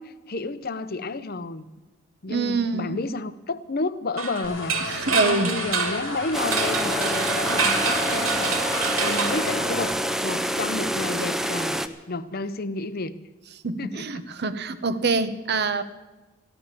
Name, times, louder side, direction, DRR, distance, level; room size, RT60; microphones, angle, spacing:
voice 1, 0.0-1.7 2.2-8.6 9.0-9.9 10.2-11.8 12.1-13.1 13.8-14.2, left 3 dB, 45° left, 0.7 m, -31 dB
voice 2, 2.3-3.0 4.9-5.5 13.6-15.8, right 3 dB, 50° right, 0.9 m, -25 dB
sound 1, 4.2-10.2, right 5 dB, 85° right, 2.4 m, -28 dB
sound 2, 4.4-10.0, left 3 dB, 60° left, 1.2 m, -35 dB
sound 3, 6.3-11.9, equal, ahead, 0.6 m, -26 dB
15.0 x 11.5 x 7.5 m
head